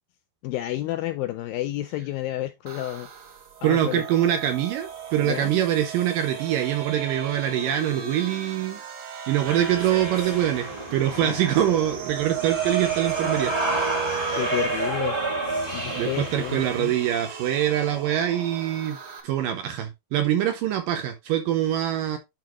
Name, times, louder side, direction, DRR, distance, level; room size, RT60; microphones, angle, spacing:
voice 1, 0.4-3.1 3.6-4.0 5.2-5.5 11.2-11.4 11.7-12.0 14.3-15.2 15.7-16.9, left 15 dB, 85° left, 2.1 m, -31 dB
sound 1, 2.7-19.2, right 9 dB, 55° right, 1.7 m, -35 dB
voice 2, 3.6-8.8 9.3-13.5 16.0-19.0 19.2-22.2, right 11 dB, 75° right, 2.1 m, -24 dB
sound 2, 9.4-16.8, right 2 dB, 20° right, 0.6 m, -30 dB
11.0 x 4.4 x 3.0 m
omnidirectional pair, 4.6 m